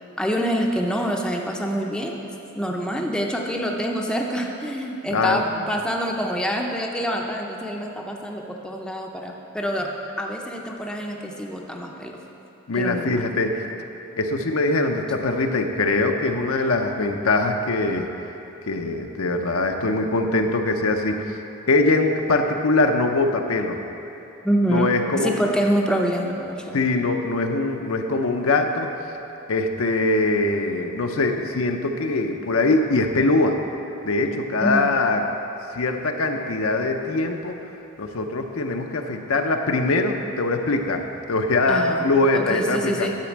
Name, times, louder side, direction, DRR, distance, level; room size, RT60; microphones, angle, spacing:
voice 1, 0.2-2.2 2.5-9.9 10.2-12.2 12.8-13.3 24.4-26.8 34.6-34.9 41.7-42.1 42.3-43.1, equal, 5° left, 0 dB, 0.6 m, -26 dB
voice 2, 5.1-5.4 12.7-13.7 14.2-18.1 18.7-21.4 21.7-23.8 24.7-25.3 26.7-28.9 29.5-33.6 34.0-35.2 35.7-37.5 38.0-43.1, left 2 dB, 70° left, 4 dB, 0.6 m, -22 dB
10.5 x 4.3 x 7.2 m, 3.0 s
head